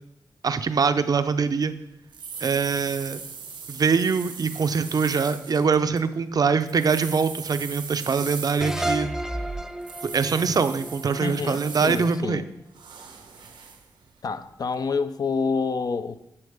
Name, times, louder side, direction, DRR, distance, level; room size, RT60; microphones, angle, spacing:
voice 1, 0.4-1.7 2.4-3.2 3.7-9.1 10.0-12.4, right 5 dB, 55° right, 0.5 m, -23 dB
sound 1, 1.6-1.7 2.1-6.0 6.5-9.0 9.8-12.2 12.7-13.9 14.5-14.6, right 5 dB, 90° right, 1.0 m, -39 dB
sound 2, 8.6-11.9, right 1 dB, 5° right, 0.5 m, -31 dB
voice 2, 11.2-12.5 14.2-16.2, left 5 dB, 55° left, 0.5 m, -28 dB
9.7 x 7.2 x 3.5 m
cardioid pair, 75°, 8 cm